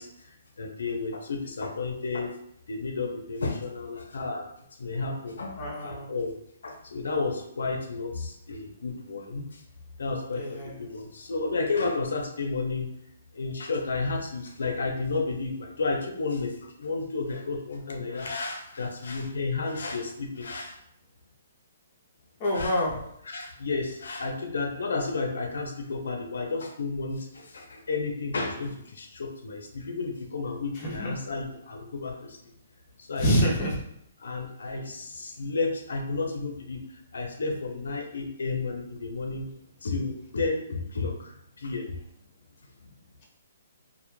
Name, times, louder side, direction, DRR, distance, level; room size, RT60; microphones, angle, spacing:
voice 1, 0.0-2.3 2.7-4.5 4.8-6.3 6.6-9.6 10.0-12.9 13.3-20.8 22.5-22.8 23.2-32.4 33.0-33.3 34.2-39.5 39.8-42.0, left 3 dB, 85° left, 3 dB, 0.4 m, -32 dB
voice 2, 5.6-6.1 10.4-10.7 22.4-23.0 30.8-31.1 33.2-33.8, equal, 25° left, -4 dB, 0.5 m, -26 dB
2.1 x 2.1 x 2.9 m, 0.74 s
hypercardioid pair, 170°, 0 cm